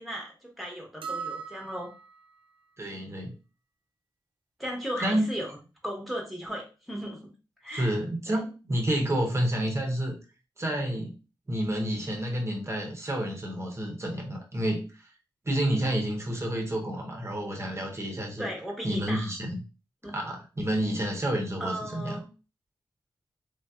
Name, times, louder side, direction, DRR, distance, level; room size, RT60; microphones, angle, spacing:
voice 1, 0.0-1.9 4.6-5.6 5.8-7.3 7.6-7.9 8.3-8.4 15.8-15.9 18.4-19.3 20.0-20.1 21.6-22.3, equal, ahead, -1 dB, 1.2 m, -36 dB
sound 1, 1.0-2.4, right 6 dB, 80° right, 0.4 m, -38 dB
voice 2, 2.8-3.3 5.0-5.3 7.7-10.1 10.6-11.2 11.5-15.1 15.5-18.5 18.8-19.6 20.1-22.2, right 1 dB, 35° right, 0 dB, 0.8 m, -29 dB
3.3 x 2.5 x 2.3 m, 0.33 s
wide cardioid pair, 75°, 8 cm